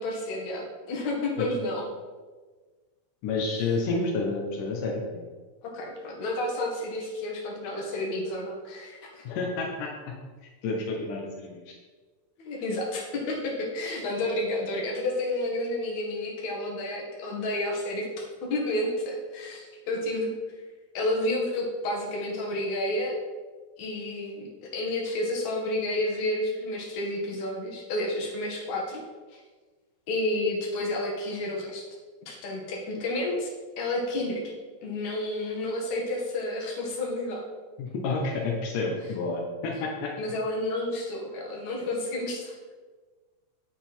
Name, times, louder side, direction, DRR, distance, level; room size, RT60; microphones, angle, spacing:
voice 1, 0.0-1.8 5.6-9.2 12.4-20.3 20.9-23.2 23.8-29.0 30.1-31.9 32.3-34.4 34.8-37.4 40.2-42.6, left 1 dB, 55° left, -2 dB, 2.3 m, -30 dB
voice 2, 3.2-5.2 9.2-9.9 10.6-11.7 37.8-40.1, left 3 dB, 85° left, 0 dB, 1.8 m, -29 dB
9.1 x 7.7 x 4.4 m, 1.4 s
omnidirectional pair, 5.5 m